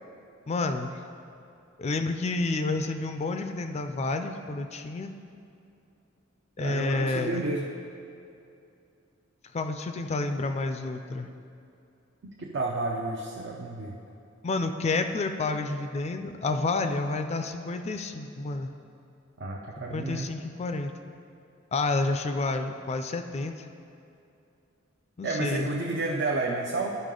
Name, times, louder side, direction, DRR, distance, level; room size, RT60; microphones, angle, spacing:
voice 1, 0.5-0.9 1.8-5.1 6.6-7.4 9.5-11.3 14.4-18.7 19.9-20.9 21.7-23.5 25.2-25.7, left 3 dB, 35° left, 7 dB, 0.4 m, -29 dB
voice 2, 6.6-7.7 12.2-14.0 19.4-20.3 25.2-27.0, right 2 dB, 60° right, -2 dB, 0.6 m, -31 dB
12.0 x 5.5 x 3.8 m, 2.6 s
head